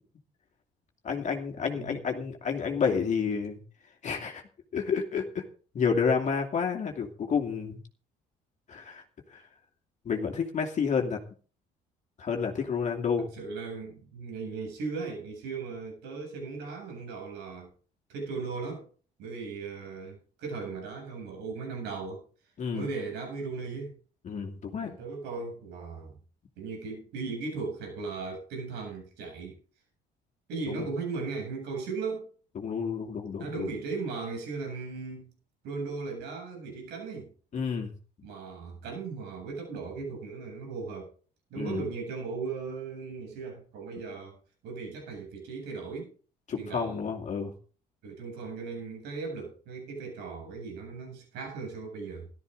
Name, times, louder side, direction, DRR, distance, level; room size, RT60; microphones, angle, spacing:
voice 1, 1.0-3.6 4.0-4.4 4.7-5.4 5.7-7.8 8.7-9.0 9.3-9.4 10.0-11.2 12.2-13.3 22.6-22.9 24.2-25.0 30.7-30.9 32.6-33.7 37.5-37.9 41.5-41.8 46.5-47.5, left 6 dB, 45° left, 2.5 m, -30 dB
voice 2, 13.3-17.7 18.1-18.9 19.2-22.2 22.7-24.0 24.8-26.2 26.6-29.6 30.5-32.3 33.4-35.3 35.6-37.3 38.2-41.1 41.5-44.4 44.6-46.1 46.6-47.0 48.0-52.3, right 4 dB, 85° right, 7.8 m, -37 dB
14.0 x 13.0 x 3.9 m
cardioid pair, 110°, 17 cm